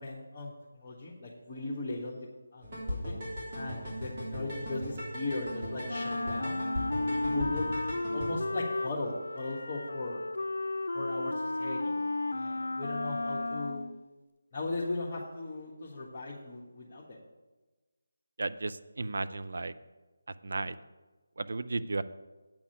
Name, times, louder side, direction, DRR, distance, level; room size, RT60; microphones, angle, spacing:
voice 1, 0.0-2.2 2.5-3.1 3.5-6.6 7.0-10.2 10.9-11.9 12.3-13.9 14.5-17.2, left 2 dB, 25° left, -6 dB, 1.5 m, -38 dB
sound 1, 2.6-8.3, equal, 40° right, 3.5 m, -37 dB
Wind instrument woodwind instrument, 5.9-14.0, left 2 dB, 70° left, 0.5 m, -33 dB
voice 2, 18.4-19.7 20.4-20.8 21.4-22.0, right 3 dB, 55° right, 12 dB, 0.5 m, -34 dB
8.6 x 5.9 x 8.2 m, 1.2 s
figure-of-eight pair, 155°, 0 cm